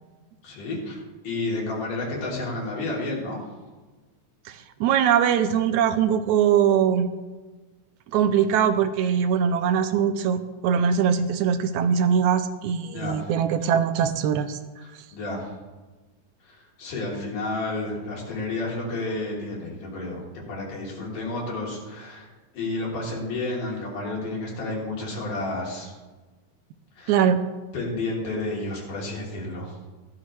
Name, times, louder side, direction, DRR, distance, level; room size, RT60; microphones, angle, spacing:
voice 1, 0.4-3.4 12.9-13.3 14.8-15.5 16.5-22.3 22.5-25.9 27.0-27.2 27.7-29.7, left 2 dB, 85° left, -3 dB, 4.7 m, -31 dB
voice 2, 4.5-7.1 8.1-14.6 27.1-27.4, right 8 dB, 80° right, 10 dB, 1.9 m, -22 dB
15.5 x 12.5 x 3.2 m, 1.2 s
omnidirectional pair, 3.6 m